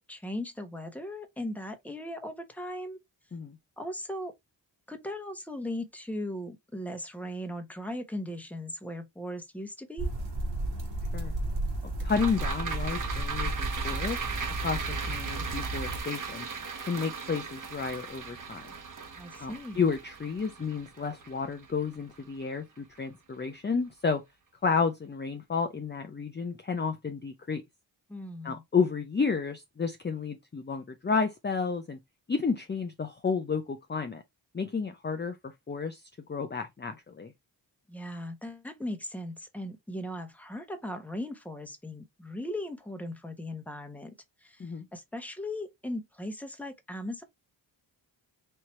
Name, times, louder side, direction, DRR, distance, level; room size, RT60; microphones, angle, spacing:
voice 1, 0.0-3.0 3.8-4.3 4.9-10.1 19.2-19.8 28.1-28.6 37.9-44.1 44.4-47.2, left 1 dB, 5° left, 1.1 m, -38 dB
sound 1, 10.0-16.0, right 1 dB, 65° right, 1.8 m, -33 dB
voice 2, 12.0-13.5 13.8-14.2 14.6-16.5 16.9-18.6 19.4-24.2 24.6-27.6 28.4-32.0 32.3-34.2 34.5-36.0 36.3-37.3 44.6-44.9, left 5 dB, 25° left, 0.6 m, -31 dB
sound 2, 12.1-22.6 23.0-23.1, right 5 dB, 45° right, 1.1 m, -38 dB
4.4 x 2.9 x 3.1 m
cardioid pair, 55°, 45 cm